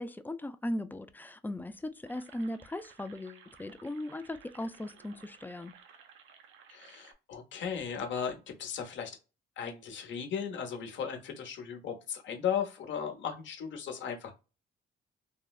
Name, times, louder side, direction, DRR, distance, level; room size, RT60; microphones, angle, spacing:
voice 1, 0.0-5.7, left 1 dB, 10° left, 0.3 m, -38 dB
sound 1, 2.0-7.1, right 7 dB, 85° right, 0.6 m, -57 dB
voice 2, 6.7-9.1 9.6-14.3, left 7 dB, 70° left, 0.9 m, -36 dB
3.6 x 2.1 x 2.3 m
cardioid pair, 90°, 20 cm